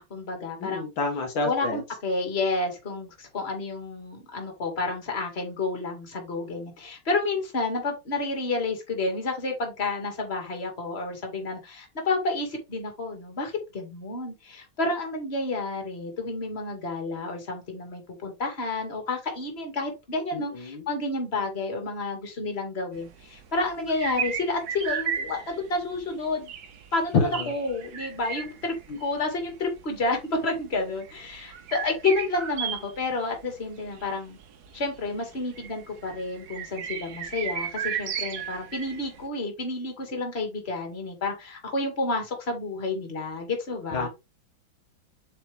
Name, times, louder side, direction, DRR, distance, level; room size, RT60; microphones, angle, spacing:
voice 1, 0.0-0.9 1.4-26.5 26.9-27.2 27.5-28.8 29.0-34.4 34.7-44.1, left 3 dB, 30° left, 2.2 m, -30 dB
voice 2, 0.6-1.8 20.3-20.8 27.1-27.5 28.9-29.0 43.9-44.1, left 4 dB, 70° left, 1.9 m, -28 dB
sound 1, 22.9-39.2, right 8 dB, 55° right, 1.4 m, -35 dB
7.7 x 4.1 x 3.4 m
omnidirectional pair, 2.2 m